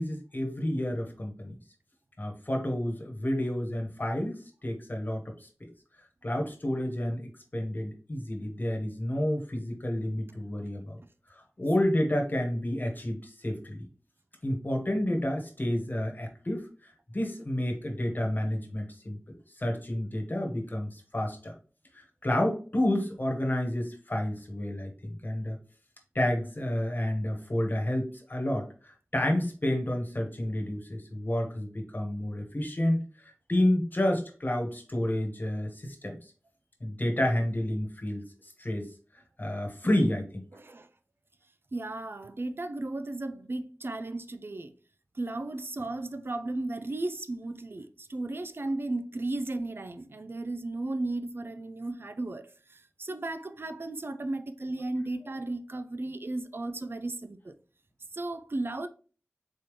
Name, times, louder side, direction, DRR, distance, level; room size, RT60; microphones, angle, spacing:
voice 1, 0.0-1.5 2.2-5.5 6.2-11.0 11.6-13.9 14.4-21.5 21.9-25.6 26.1-36.3 36.8-38.2 38.6-38.9 39.4-40.4, left 1 dB, 45° left, 1.4 m, -30 dB
voice 2, 40.5-40.9 41.7-44.7 45.1-57.5 58.1-58.9, right 2 dB, 55° right, 0.5 m, -35 dB
4.2 x 3.6 x 3.2 m
wide cardioid pair, 60°, 5 cm